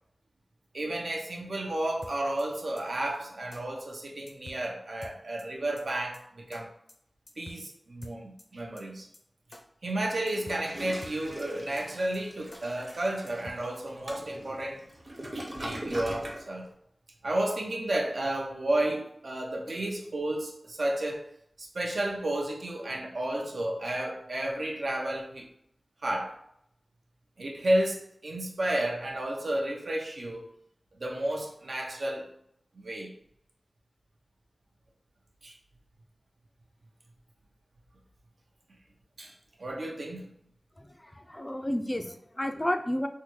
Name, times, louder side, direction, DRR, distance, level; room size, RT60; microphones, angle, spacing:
voice 1, 0.7-6.7 7.4-9.1 9.8-14.8 15.3-16.7 17.2-21.3 21.6-25.5 26.0-26.4 27.4-30.4 31.0-32.3 32.7-33.1 35.4-35.5 39.2-39.3 39.6-40.3, right 1 dB, 75° right, 0.6 m, -32 dB
sound 1, 2.0-2.4 2.8-2.9 3.1-3.2 3.5-3.6 3.9-4.0 4.3-4.7 5.0-5.4 5.8-5.9 6.1-6.2 6.5-6.6 6.9-7.0 7.3-7.7 8.0-8.4 8.8-8.9 9.1-9.2 9.5-9.6 9.9-10.0 10.3-10.7 11.0-11.4 11.8-11.9 12.1-12.2 12.5-12.6 12.9-13.0 13.3-13.7, left 2 dB, 70° left, 0.5 m, -47 dB
Toilet flush, 10.3-16.4, right 1 dB, 35° right, 0.8 m, -41 dB
voice 2, 40.8-43.1, left 1 dB, 20° left, 0.3 m, -31 dB
3.7 x 2.2 x 3.0 m
wide cardioid pair, 75°, 0 cm